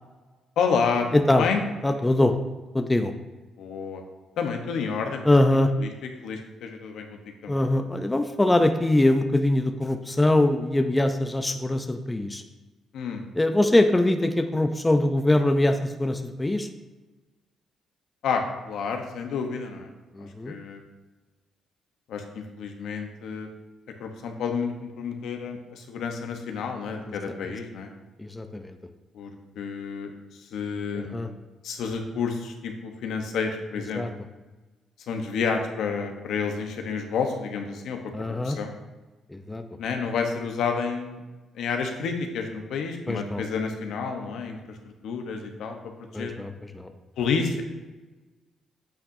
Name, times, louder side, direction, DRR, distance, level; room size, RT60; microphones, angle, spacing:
voice 1, 0.6-1.1 1.4-1.6 3.6-4.0 4.4-5.2 5.8-5.9 6.2-7.6 12.9-13.2 18.2-19.9 20.2-20.8 22.1-23.5 24.0-27.9 29.1-29.3 29.6-30.1 30.4-31.1 31.6-34.0 35.1-38.7 39.8-41.2 41.5-44.8 45.0-45.8 46.1-46.3 47.2-47.6, left 5 dB, 75° left, 4 dB, 0.9 m, -30 dB
voice 2, 1.1-1.5 1.8-2.3 2.7-3.1 5.2-5.7 7.5-12.4 13.3-16.7 20.1-20.5 28.2-28.8 30.9-31.3 33.9-34.1 38.1-38.6 39.3-39.6 43.1-43.4 46.1-46.9, left 1 dB, 15° left, 7 dB, 0.5 m, -23 dB
8.6 x 5.8 x 2.7 m, 1.2 s
cardioid pair, 90°, 0 cm